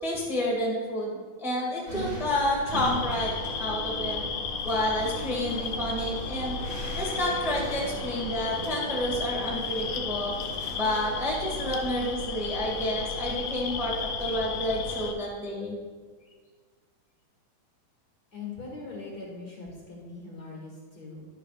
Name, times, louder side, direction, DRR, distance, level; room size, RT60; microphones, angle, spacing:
voice 1, 0.0-3.3 3.6-4.2 4.6-6.6 6.9-10.3 10.7-15.8, left 1 dB, 5° right, -4 dB, 0.5 m, -29 dB
sound 1, 1.9-15.1, equal, 25° right, 2.2 m, -37 dB
sound 2, 2.7-15.1, left 7 dB, 75° left, 2.1 m, -35 dB
voice 2, 18.3-21.2, left 3 dB, 35° left, -3 dB, 1.7 m, -41 dB
11.5 x 11.0 x 2.5 m, 1.5 s
omnidirectional pair, 4.1 m